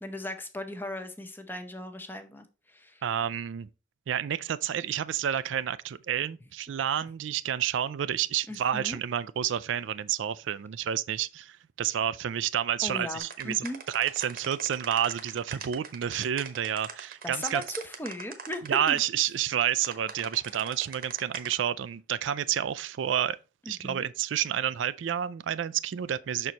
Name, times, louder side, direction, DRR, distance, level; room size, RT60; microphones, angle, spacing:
voice 1, 0.0-3.0 8.5-9.0 12.8-13.8 17.2-19.0 23.7-24.1, left 1 dB, 10° left, 0.7 m, -38 dB
voice 2, 3.0-3.7 4.1-13.6 13.9-17.6 18.6-23.4 23.7-26.5, right 10 dB, 80° right, 0.4 m, -29 dB
sound 1, 13.2-19.0 19.8-21.5, right 6 dB, 50° right, 1.0 m, -41 dB
6.3 x 4.4 x 4.0 m
head